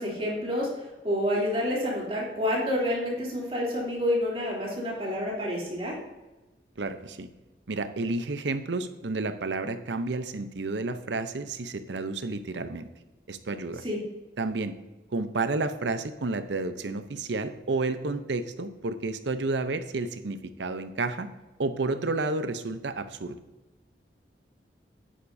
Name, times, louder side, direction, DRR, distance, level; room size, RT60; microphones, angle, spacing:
voice 1, 0.0-5.9 13.8-14.0, left 1 dB, 35° right, -4 dB, 3.0 m, -28 dB
voice 2, 6.8-7.3 7.7-12.9 13.3-13.8 14.4-14.7 15.1-21.3 21.6-23.4, right 3 dB, 80° right, 10 dB, 0.7 m, -31 dB
10.0 x 9.4 x 2.7 m, 1.1 s
head